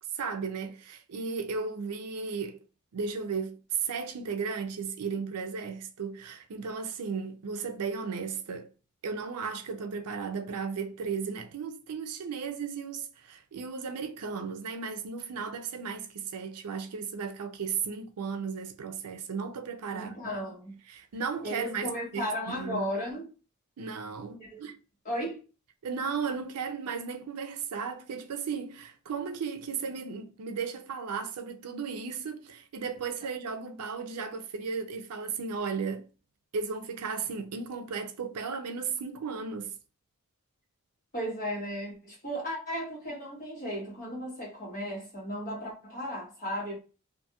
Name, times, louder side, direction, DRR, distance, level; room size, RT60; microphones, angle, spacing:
voice 1, 0.1-2.6 2.9-8.7 9.0-20.1 20.9-22.8 23.8-24.8 25.8-36.1 36.5-39.7, right 5 dB, 90° right, 0.5 m, -35 dB
voice 2, 19.9-20.7 21.4-23.3 24.4-24.7 25.0-25.4 41.1-46.8, equal, 35° left, 1.3 m, -35 dB
2.5 x 2.4 x 2.8 m
head